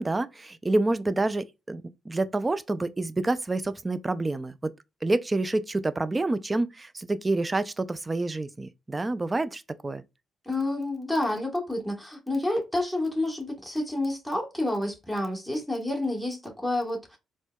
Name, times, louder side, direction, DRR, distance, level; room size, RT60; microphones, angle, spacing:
voice 1, 0.0-4.5 5.0-10.0, right 2 dB, 25° right, 0.3 m, -28 dB
voice 2, 10.4-17.2, left 1 dB, 5° right, 1.2 m, -29 dB
4.2 x 2.2 x 2.2 m
supercardioid pair, 65°, 0 cm